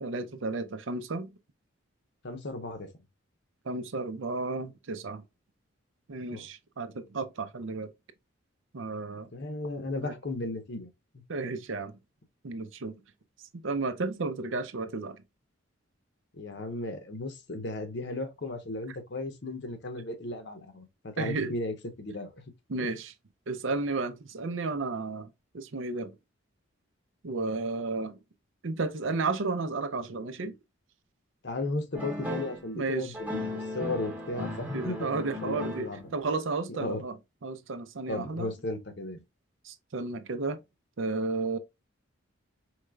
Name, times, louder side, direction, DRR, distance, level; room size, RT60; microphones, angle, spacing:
voice 1, 0.0-1.4 3.6-5.2 6.1-7.9 8.7-9.3 10.0-10.2 11.3-11.9 12.4-12.9 13.5-15.2 21.2-21.5 22.7-23.1 23.5-26.2 27.2-28.2 28.6-30.6 32.7-33.2 34.7-38.5 39.6-40.6 41.0-41.6, right 3 dB, 70° right, 0.6 m, -33 dB
voice 2, 2.2-2.9 6.3-6.5 9.3-10.9 11.1-11.2 16.3-22.3 22.8-22.9 31.4-35.1 35.4-36.1 36.8-37.0 38.1-39.2, left 2 dB, 55° left, 0.9 m, -35 dB
sound 1, 31.9-32.6 33.1-36.2, left 1 dB, 10° right, 0.9 m, -36 dB
4.8 x 3.2 x 2.2 m
head